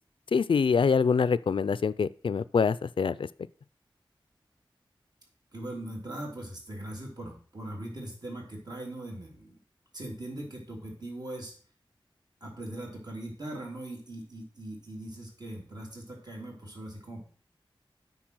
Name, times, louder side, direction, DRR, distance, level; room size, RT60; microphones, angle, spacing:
voice 1, 0.3-3.3, left 5 dB, 75° left, 18 dB, 0.4 m, -25 dB
voice 2, 5.5-9.5 9.9-11.5 12.4-17.3, right 1 dB, 50° right, -1 dB, 3.2 m, -40 dB
8.6 x 5.7 x 6.1 m, 0.43 s
wide cardioid pair, 90°, 9 cm